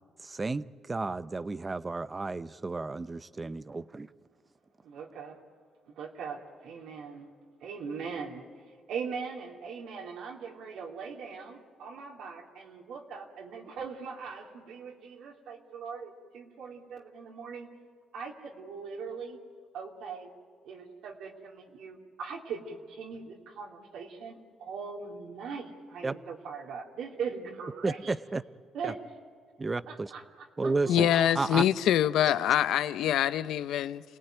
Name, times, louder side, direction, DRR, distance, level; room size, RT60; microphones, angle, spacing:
voice 1, 0.2-4.1 26.0-26.1 27.8-28.4 28.8-28.9 29.6-30.1 30.6-31.1 31.3-31.6, right 3 dB, 25° right, 0.8 m, -32 dB
voice 2, 4.8-5.4 5.9-7.3 7.6-17.7 18.1-19.4 19.7-20.3 20.6-28.1 28.7-29.0 29.9-31.1, right 5 dB, 80° right, 3.0 m, -40 dB
voice 3, 30.9-34.0, left 11 dB, 85° left, 0.7 m, -25 dB
28.0 x 18.5 x 9.2 m
cardioid pair, 90°, 0 cm